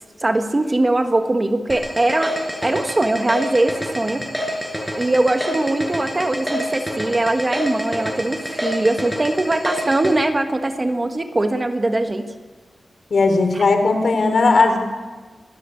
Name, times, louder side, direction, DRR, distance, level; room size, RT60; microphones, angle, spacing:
voice 1, 0.2-2.3 2.6-4.2 5.0-12.2 13.5-13.6, right 2 dB, 25° right, 6 dB, 1.6 m, -21 dB
sound 1, 1.7-10.1, equal, ahead, 5.9 m, -27 dB
voice 2, 13.1-14.8, left 3 dB, 65° left, 7 dB, 3.4 m, -16 dB
26.5 x 14.0 x 9.8 m, 1.3 s
wide cardioid pair, 155°, 0 cm